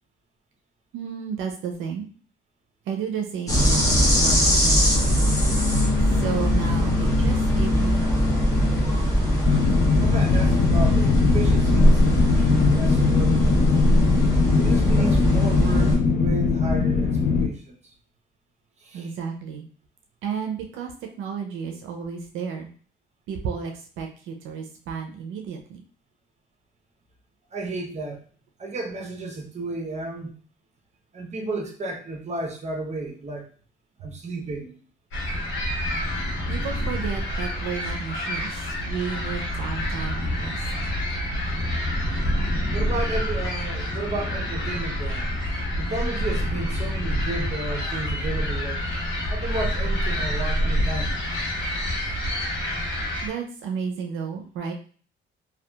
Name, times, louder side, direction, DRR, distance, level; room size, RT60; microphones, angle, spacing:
voice 1, 0.9-2.1 2.9-5.2 6.1-8.5 18.9-19.7 20.2-20.9 21.2-22.7 23.3-25.8 36.5-40.7 53.2-54.7, right 6 dB, 85° right, 3 dB, 0.4 m, -32 dB
sound 1, 3.5-16.0, equal, 15° left, 0.9 m, -20 dB
sound 2, 9.5-17.5, left 5 dB, 45° left, 0.4 m, -21 dB
voice 2, 10.0-13.9 14.6-17.9 18.8-19.1 27.5-28.2 28.6-30.3 31.1-33.5 34.0-34.8 42.7-45.3 45.8-48.8 49.3-51.1, right 2 dB, 35° right, 1 dB, 0.7 m, -33 dB
sound 3, 35.1-53.3, equal, 80° left, 0.9 m, -27 dB
2.8 x 2.2 x 2.2 m, 0.43 s
cardioid pair, 90°, 20 cm